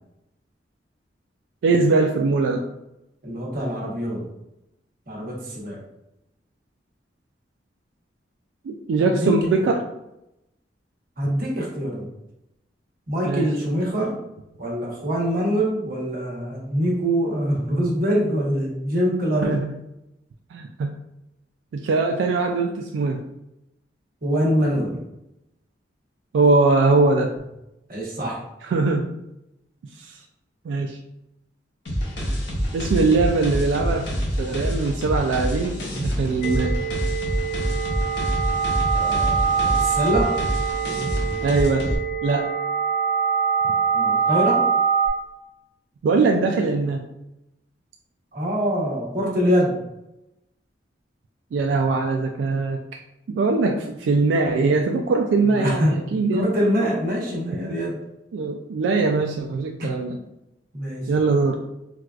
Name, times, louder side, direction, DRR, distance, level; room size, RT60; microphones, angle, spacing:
voice 1, 1.6-2.6 8.6-9.9 13.2-13.5 19.4-19.7 20.5-20.9 21.7-23.2 26.3-27.3 28.6-29.1 30.0-30.2 30.7-31.0 32.7-34.1 34.4-36.8 41.4-41.9 42.2-42.5 43.6-43.7 46.0-47.0 51.5-53.0 53.3-56.5 58.3-60.2 61.1-61.6, right 3 dB, 90° right, 3 dB, 0.3 m, -21 dB
voice 2, 3.2-4.2 5.1-5.8 9.1-9.4 11.2-12.1 13.1-14.2 14.6-19.5 24.2-25.0 27.9-28.4 38.9-40.3 43.9-44.6 48.3-49.8 55.4-56.0 56.3-58.0 59.8-59.9 60.7-61.1, equal, 55° right, -4 dB, 1.0 m, -24 dB
sound 1, 31.9-42.0, equal, 75° left, 0.9 m, -27 dB
sound 2, 36.4-45.1, right 6 dB, 50° left, 0.8 m, -24 dB
4.5 x 2.3 x 2.4 m, 0.88 s
head